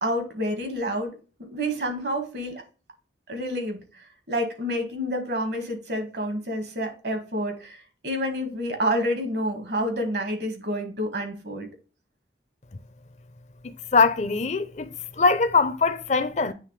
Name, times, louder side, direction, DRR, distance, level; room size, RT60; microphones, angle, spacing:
voice 1, 0.0-2.6 3.3-3.8 4.3-11.7, equal, 65° right, 1.9 m, -28 dB
voice 2, 13.9-14.9 15.2-16.5, left 4 dB, 40° left, 0.5 m, -21 dB
9.2 x 3.4 x 3.2 m
head